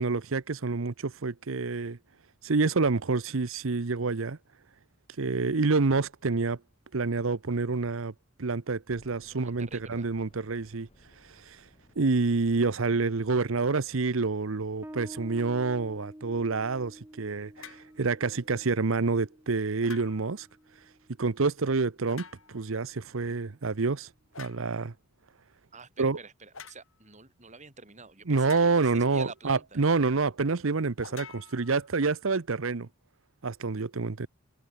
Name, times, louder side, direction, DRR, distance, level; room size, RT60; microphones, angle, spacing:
voice 1, 0.0-2.0 2.4-4.4 5.2-6.6 6.9-8.1 8.4-10.9 11.5-11.6 12.0-20.5 21.2-24.1 24.4-24.9 26.0-26.2 28.3-32.9 33.4-34.3, right 4 dB, 70° right, 0.8 m, -28 dB
sound 1, 8.9-15.7, left 1 dB, 30° left, 3.5 m, -61 dB
voice 2, 9.3-10.1 25.7-29.8, right 4 dB, 35° right, 4.6 m, -48 dB
Bass guitar, 14.8-22.0, right 1 dB, 10° right, 1.2 m, -50 dB
sound 2, 17.6-17.9 19.8-20.4 22.0-22.7 24.3-24.7 26.5-26.8 28.3-29.1 31.0-32.1, left 6 dB, 70° left, 3.3 m, -48 dB
head